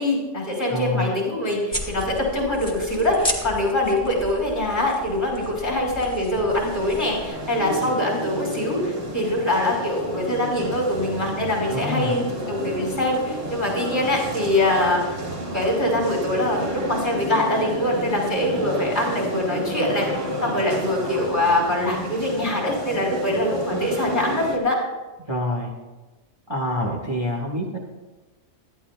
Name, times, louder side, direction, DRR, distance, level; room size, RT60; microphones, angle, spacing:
voice 1, 0.0-15.2 15.5-20.1 20.4-24.8, left 1 dB, 40° left, -2 dB, 5.1 m, -23 dB
voice 2, 0.7-1.2 11.7-12.2 25.3-25.7 26.5-27.8, left 1 dB, 20° right, -1 dB, 1.5 m, -26 dB
sound 1, 1.7-7.3, equal, 5° left, 1.6 m, -33 dB
sound 2, 6.5-24.6, right 1 dB, 85° right, 2.2 m, -31 dB
21.0 x 14.0 x 2.3 m, 1.2 s
omnidirectional pair, 1.3 m